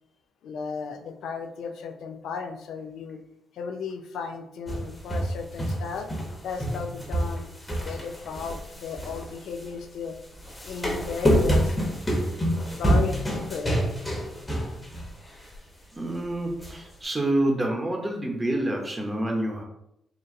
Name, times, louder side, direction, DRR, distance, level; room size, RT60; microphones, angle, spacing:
voice 1, 0.4-3.2 3.5-6.1 6.4-7.5 7.8-10.2 10.6-11.7 12.4-12.5 12.8-13.8, left 5 dB, 80° left, 6 dB, 0.4 m, -35 dB
sound 1, 4.7-6.3 6.6-9.7 10.4-15.1 15.5-15.6 16.6-16.7, equal, 15° left, 1.2 m, -27 dB
voice 2, 15.9-19.6, right 1 dB, 15° right, 1 dB, 0.8 m, -27 dB
4.1 x 2.6 x 3.7 m, 0.78 s
cardioid pair, 110°, 0 cm